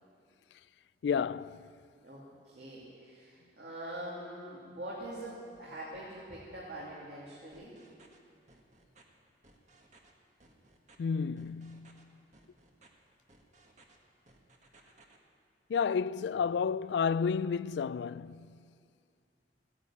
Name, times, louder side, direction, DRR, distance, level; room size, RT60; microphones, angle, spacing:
voice 1, 1.0-1.7 11.0-12.1 15.7-18.6, left 6 dB, 75° left, 0.3 m, -31 dB
voice 2, 2.0-7.8, right 1 dB, 70° right, 2.7 m, -44 dB
sound 1, 7.5-8.2 8.5-9.0 9.4-10.1 10.4-11.0 11.4-12.0 12.3-12.9 13.3-14.0 14.3-15.2, right 2 dB, 45° right, 1.5 m, -61 dB
15.0 x 10.0 x 8.9 m
head